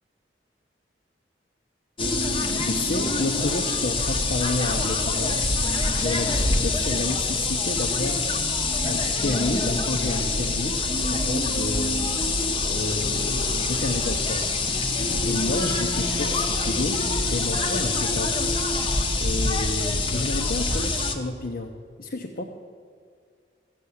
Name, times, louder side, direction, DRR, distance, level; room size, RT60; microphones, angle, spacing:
sound 1, 2.0-21.2, left 3 dB, 30° left, 1.0 m, -25 dB
voice 1, 2.4-8.3 8.8-10.8 11.1-14.5 15.1-18.4 19.2-21.7 22.0-22.4, left 2 dB, 55° left, 0 dB, 0.8 m, -30 dB
15.0 x 6.8 x 8.4 m, 2.1 s
head